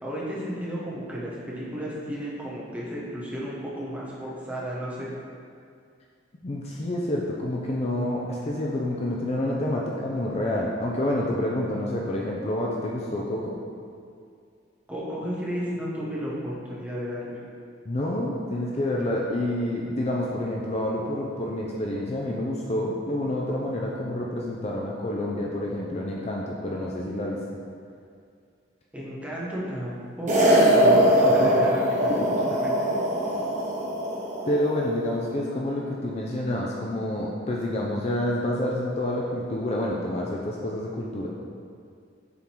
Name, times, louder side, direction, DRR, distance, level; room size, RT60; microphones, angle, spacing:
voice 1, 0.0-5.1 14.9-17.4 28.9-32.2 32.6-32.9, equal, 5° right, -7 dB, 1.1 m, -33 dB
voice 2, 6.4-13.6 17.9-27.4 30.8-31.7 32.1-32.6 34.5-41.3, left 1 dB, 35° left, -2 dB, 0.5 m, -28 dB
sound 1, 30.3-34.7, equal, 40° right, 1.4 m, -21 dB
7.2 x 3.8 x 4.5 m, 2.3 s
head